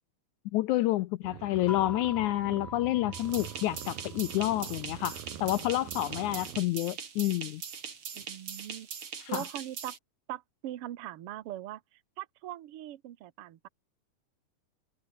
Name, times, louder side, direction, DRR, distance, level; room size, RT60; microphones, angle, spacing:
voice 1, 0.5-7.6 9.2-9.4, left 16 dB, 85° left, 1.7 m, -29 dB
sound 1, 1.2-6.6, right 11 dB, 80° right, 3.6 m, -44 dB
sound 2, 1.7-4.4, left 4 dB, 40° left, 4.7 m, -44 dB
sound 3, 3.1-10.0, right 6 dB, 40° right, 3.0 m, -41 dB
voice 2, 8.1-8.9 9.3-9.9 10.3-11.8 12.2-13.7, right 13 dB, 60° right, 1.6 m, -41 dB
omnidirectional pair, 4.0 m